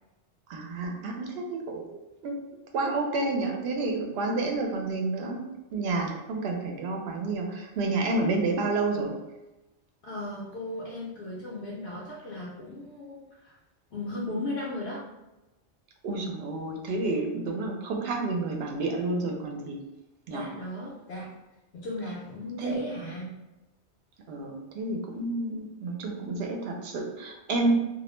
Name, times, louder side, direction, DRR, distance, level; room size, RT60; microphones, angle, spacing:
voice 1, 0.5-2.4 2.7-5.4 5.7-9.1 16.0-19.8 20.3-20.5 22.6-22.8 24.3-27.8, right 3 dB, 70° right, 2 dB, 0.8 m, -30 dB
voice 2, 10.0-13.6 13.9-15.0 20.3-21.3 21.7-23.3, left 1 dB, 75° left, -6 dB, 0.8 m, -36 dB
2.4 x 2.0 x 3.0 m, 1.0 s
omnidirectional pair, 1.1 m